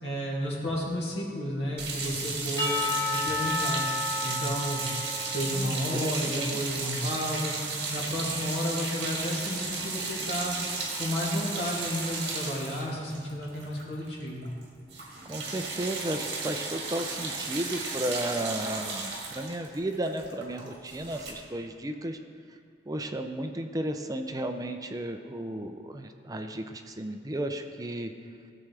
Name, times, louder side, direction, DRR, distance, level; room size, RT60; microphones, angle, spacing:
voice 1, 0.0-2.7 3.1-3.8 4.2-4.9 5.3-7.5 7.9-10.6 10.9-14.5, left 1 dB, 80° left, -4 dB, 2.4 m, -32 dB
sound 1, 1.8-14.2 14.4-14.6 14.9-21.3, right 4 dB, 65° right, 1.8 m, -34 dB
Percussion / Church bell, 2.6-6.9, left 2 dB, 20° left, 1.4 m, -33 dB
voice 2, 5.5-6.6 15.3-22.2 22.9-28.1, right 1 dB, 20° right, 5 dB, 0.5 m, -34 dB
16.0 x 7.3 x 3.3 m, 2.4 s
head